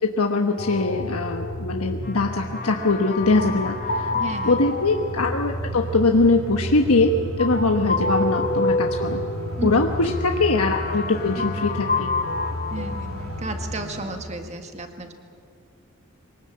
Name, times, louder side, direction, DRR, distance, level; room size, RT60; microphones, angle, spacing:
voice 1, 0.0-4.1 4.4-9.2 9.6-12.1, left 3 dB, 80° left, 3 dB, 1.2 m, -22 dB
sound 1, 0.6-13.4, left 2 dB, 40° left, 1.4 m, -29 dB
sound 2, 3.2-14.2, right 1 dB, 80° right, 3.4 m, -35 dB
voice 2, 4.1-4.6 9.6-9.7 11.4-11.5 12.7-15.1, right 2 dB, 30° right, 6 dB, 1.9 m, -33 dB
23.5 x 19.0 x 8.7 m, 2.2 s
head